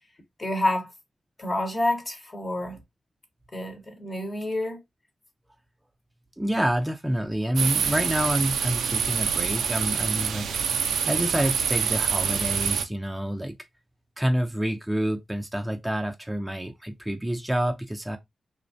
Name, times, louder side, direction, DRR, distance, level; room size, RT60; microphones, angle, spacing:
voice 1, 0.4-0.9 1.4-2.8 3.5-4.8, left 1 dB, 40° left, 1.0 m, -28 dB
voice 2, 6.4-10.5 10.8-13.5 14.2-18.2, equal, 10° right, 0.4 m, -28 dB
sound 1, 7.6-12.8, right 7 dB, 85° right, 0.3 m, -26 dB
2.4 x 2.1 x 2.5 m
supercardioid pair, 40°, 0 cm